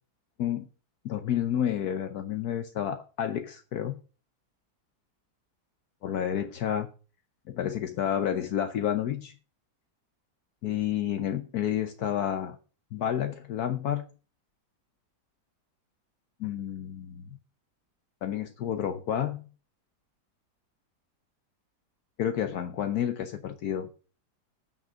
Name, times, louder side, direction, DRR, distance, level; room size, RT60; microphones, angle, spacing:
voice 1, 1.0-4.0 6.0-6.9 7.5-9.3 10.6-12.6 12.9-14.0 16.4-17.4 18.2-19.5 22.2-23.9, left 10 dB, 70° left, 1.3 m, -30 dB
9.0 x 6.4 x 6.4 m
omnidirectional pair, 1.8 m